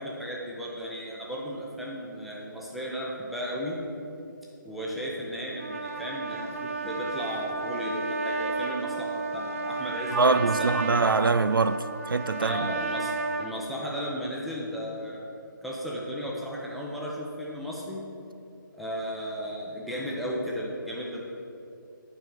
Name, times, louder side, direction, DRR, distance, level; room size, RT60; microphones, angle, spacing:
voice 1, 0.0-3.8 4.6-10.7 12.4-13.1 13.4-15.3 15.6-18.0 18.7-21.3, equal, ahead, 0.8 m, -35 dB
Trumpet, 5.5-13.5, right 3 dB, 40° right, 0.7 m, -33 dB
voice 2, 10.1-12.7, right 4 dB, 80° right, 0.4 m, -24 dB
8.7 x 4.6 x 7.1 m
figure-of-eight pair, 150°, 11 cm